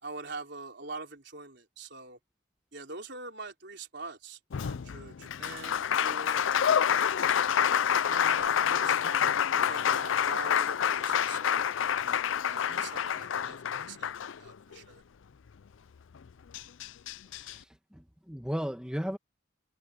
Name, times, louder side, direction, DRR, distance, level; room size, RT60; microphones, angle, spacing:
voice 1, 0.0-2.2 2.7-7.1 7.7-9.3 9.6-11.6 12.0-15.0, right 3 dB, 55° right, 4.6 m, -44 dB
Applause, 4.5-14.8 16.2-16.3 16.5-17.6, left 8 dB, 70° left, 0.4 m, -28 dB
voice 2, 17.9-19.2, equal, 5° right, 1.4 m, -35 dB
head